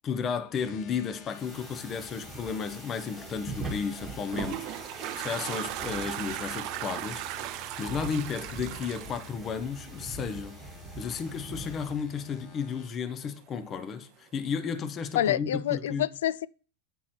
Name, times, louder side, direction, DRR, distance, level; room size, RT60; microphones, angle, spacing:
voice 1, 0.0-4.6 5.1-7.4 7.8-10.6 11.0-16.1, left 6 dB, 25° left, 0.6 m, -33 dB
sound 1, 0.5-12.9, left 6 dB, 40° left, 0.9 m, -51 dB
sound 2, 1.3-12.0, right 3 dB, 10° right, 1.3 m, -43 dB
Toilet flush, 4.0-10.3, right 13 dB, 40° right, 0.5 m, -37 dB
voice 2, 15.2-16.5, left 11 dB, 85° left, 0.3 m, -27 dB
8.7 x 4.5 x 4.3 m
supercardioid pair, 160°, 0 cm